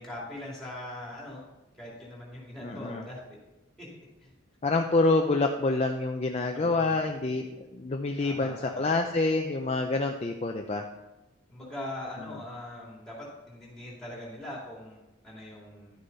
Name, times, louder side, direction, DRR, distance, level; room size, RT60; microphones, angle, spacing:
voice 1, 0.0-1.4 1.7-3.4 3.8-3.9 4.2-4.3 6.5-7.0 8.2-8.9 11.5-16.0, left 1 dB, ahead, -4 dB, 2.6 m, -41 dB
voice 2, 2.6-3.1 4.6-10.9, left 3 dB, 30° left, 3 dB, 0.4 m, -27 dB
11.0 x 6.7 x 4.1 m, 1.0 s
head